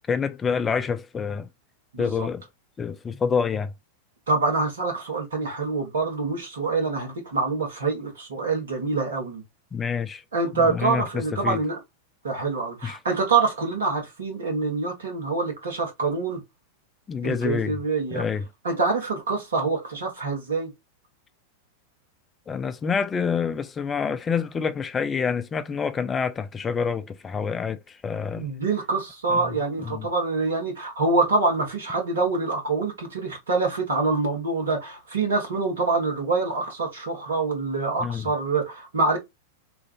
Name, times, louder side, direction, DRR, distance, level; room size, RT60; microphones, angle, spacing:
voice 1, 0.0-1.5 2.0-2.4 2.8-3.7 9.7-10.2 10.5-11.6 12.8-13.0 17.1-17.8 18.1-18.4 22.5-28.5 29.3-29.4 29.8-30.1 38.0-38.3, left 6 dB, 20° left, 0.3 m, -27 dB
voice 2, 1.9-2.3 4.3-9.4 10.3-11.8 12.2-16.4 17.2-18.2 18.6-20.7 28.3-39.2, right 3 dB, 65° right, 1.4 m, -25 dB
3.1 x 2.4 x 2.4 m
figure-of-eight pair, 90°, 0 cm